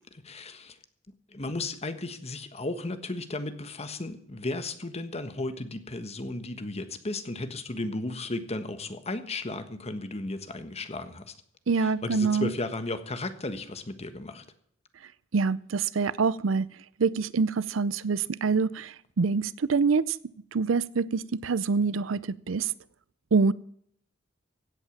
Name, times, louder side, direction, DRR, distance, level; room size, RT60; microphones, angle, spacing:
voice 1, 0.1-0.8 1.3-11.3 11.7-14.4, left 2 dB, 35° left, 10 dB, 1.3 m, -35 dB
voice 2, 11.7-12.5 15.3-16.7 17.0-20.2 20.5-22.7 23.3-23.5, right 4 dB, 85° right, 20 dB, 0.5 m, -25 dB
16.5 x 8.2 x 7.2 m, 0.67 s
head